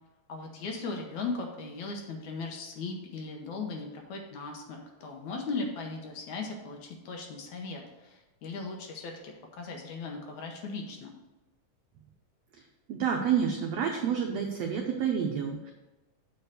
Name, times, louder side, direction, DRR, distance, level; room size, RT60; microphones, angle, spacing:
voice 1, 0.3-11.2, left 3 dB, 70° left, 2 dB, 2.1 m, -38 dB
voice 2, 12.9-15.7, right 7 dB, 85° right, 1 dB, 1.4 m, -29 dB
7.5 x 4.6 x 6.6 m, 1.1 s
omnidirectional pair, 4.0 m